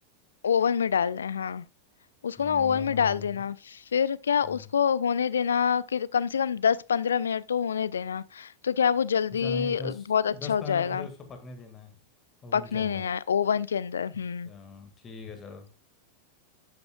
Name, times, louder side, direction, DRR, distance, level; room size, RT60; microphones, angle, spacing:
voice 1, 0.4-1.6 2.2-11.1 12.5-14.5, left 7 dB, 70° left, 0.3 m, -26 dB
voice 2, 2.4-3.4 4.4-4.7 9.4-10.1 10.3-11.9 12.4-13.0 14.4-15.7, left 4 dB, 25° left, 1.8 m, -40 dB
10.0 x 7.6 x 2.3 m
figure-of-eight pair, 90°, 0 cm